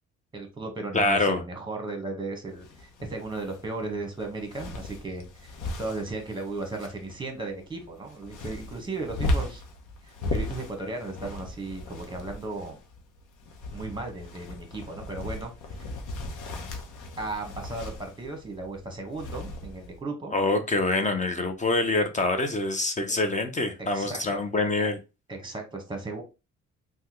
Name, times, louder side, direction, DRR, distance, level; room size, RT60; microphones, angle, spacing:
voice 1, 0.3-9.6 10.0-12.8 13.7-15.5 15.8-15.9 17.2-20.4 23.1-23.2 23.8-24.4 25.3-26.2, right 2 dB, 15° right, 4 dB, 1.2 m, -36 dB
voice 2, 0.9-1.4 20.3-25.0, left 2 dB, 25° left, 6 dB, 0.6 m, -25 dB
sound 1, 2.5-20.0, left 2 dB, 80° left, 0.8 m, -37 dB
3.4 x 2.2 x 2.9 m, 0.28 s
cardioid pair, 90°, 30 cm